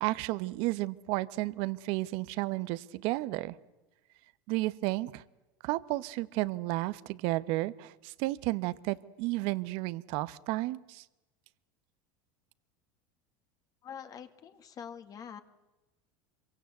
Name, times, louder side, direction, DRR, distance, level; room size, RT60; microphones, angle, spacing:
voice 1, 0.0-3.6 4.5-5.2 5.6-11.0, right 19 dB, 65° right, 17 dB, 1.0 m, -32 dB
voice 2, 13.8-15.4, left 8 dB, 35° left, 8 dB, 1.9 m, -45 dB
26.5 x 23.5 x 8.1 m, 1.0 s
supercardioid pair, 120°, 10 cm